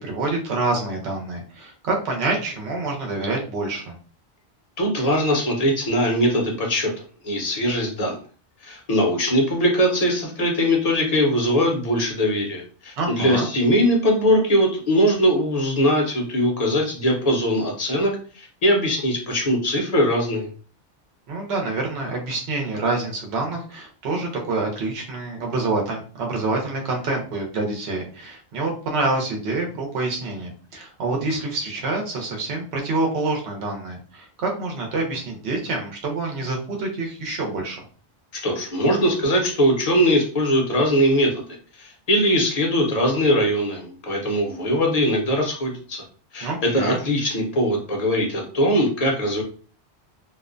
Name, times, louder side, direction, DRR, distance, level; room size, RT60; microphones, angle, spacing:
voice 1, 0.0-3.9 13.0-13.5 21.3-37.8 46.4-47.0, right 3 dB, 70° right, 1 dB, 0.9 m, -27 dB
voice 2, 4.8-6.9 7.2-8.2 8.6-20.5 38.4-46.0 46.3-49.4, equal, 40° left, 0 dB, 0.6 m, -21 dB
2.4 x 2.1 x 2.4 m, 0.40 s
omnidirectional pair, 1.1 m